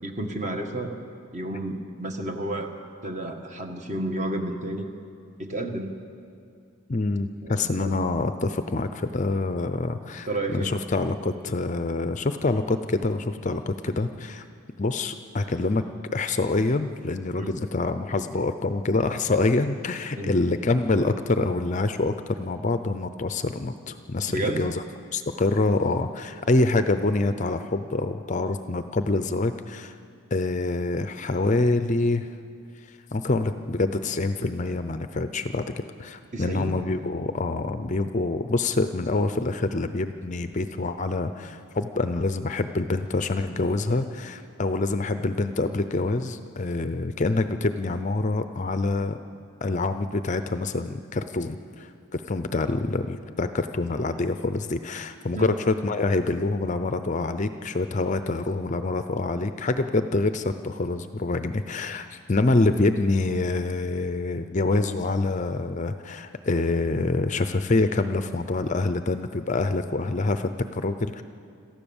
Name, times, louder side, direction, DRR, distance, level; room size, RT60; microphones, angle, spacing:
voice 1, 0.0-1.0 1.3-2.7 3.0-4.9 5.4-5.9 7.4-7.9 10.3-10.7 17.4-17.5 20.1-20.3 24.3-24.7 36.3-36.8 55.3-55.5, right 1 dB, 35° right, 4 dB, 1.5 m, -31 dB
voice 2, 6.9-14.4 14.8-15.8 16.1-24.8 25.1-29.9 30.3-32.3 33.1-49.2 49.6-71.2, left 2 dB, 35° left, 9 dB, 0.6 m, -26 dB
27.0 x 14.5 x 7.1 m, 2.4 s
head